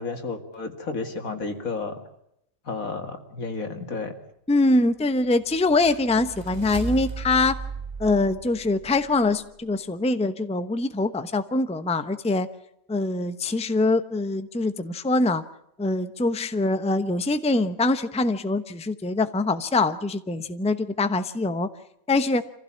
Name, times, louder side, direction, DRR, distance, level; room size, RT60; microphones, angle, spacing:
voice 1, 0.0-2.0 2.7-4.1, left 4 dB, 80° left, 6 dB, 2.6 m, -32 dB
voice 2, 4.5-7.6 8.0-12.5 12.9-15.4 15.8-21.7 22.1-22.4, left 2 dB, 5° left, 10 dB, 0.8 m, -23 dB
sound 1, 5.2-9.5, right 4 dB, 30° right, 1.6 m, -36 dB
26.0 x 15.5 x 8.5 m, 0.77 s
omnidirectional pair, 1.4 m